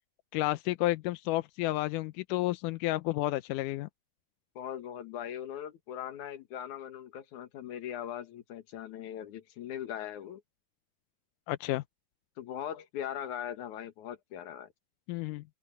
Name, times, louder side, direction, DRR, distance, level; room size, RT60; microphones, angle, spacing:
voice 1, 0.3-3.9 11.5-11.8 15.1-15.4, left 17 dB, 90° left, 2.2 m, -31 dB
voice 2, 4.6-10.4 12.4-14.7, left 10 dB, 75° left, 2.9 m, -40 dB
open air
omnidirectional pair, 3.6 m